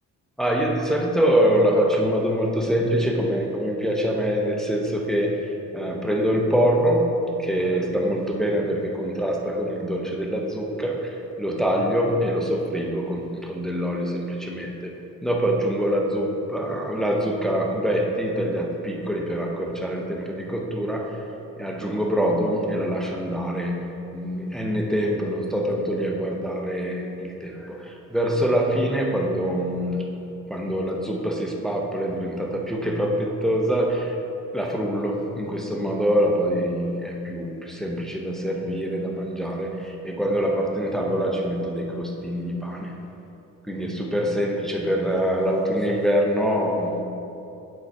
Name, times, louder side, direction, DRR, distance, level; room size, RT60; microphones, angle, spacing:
voice 1, 0.4-5.3 5.7-7.1 7.4-14.9 15.2-21.1 21.6-23.8 24.1-30.1 30.5-34.1 34.5-42.9 43.7-47.0, equal, ahead, 0 dB, 0.7 m, -24 dB
8.0 x 3.9 x 4.6 m, 2.8 s
cardioid pair, 90°, 30 cm